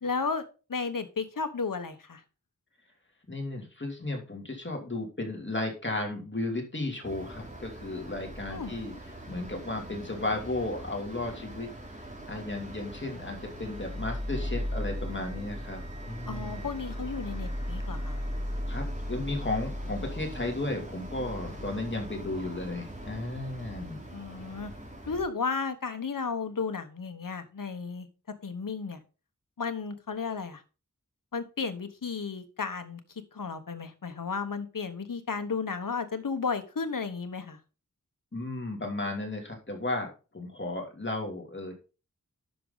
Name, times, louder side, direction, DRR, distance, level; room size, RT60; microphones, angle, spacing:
voice 1, 0.0-0.4 0.7-2.2 8.5-8.7 16.3-18.3 24.1-24.7 25.1-28.1 28.4-29.0 29.6-30.6 31.3-33.0 33.3-37.6, left 5 dB, 75° left, 9 dB, 1.2 m, -33 dB
voice 2, 3.3-11.7 12.3-16.7 18.7-24.0 38.3-40.1 40.3-41.7, left 2 dB, 35° left, 2 dB, 2.8 m, -34 dB
sound 1, 7.0-25.2, equal, 20° right, 3.3 m, -38 dB
Wind instrument woodwind instrument, 12.8-18.7, right 4 dB, 55° right, 1.4 m, -57 dB
10.0 x 6.3 x 3.9 m, 0.33 s
wide cardioid pair, 70°, 33 cm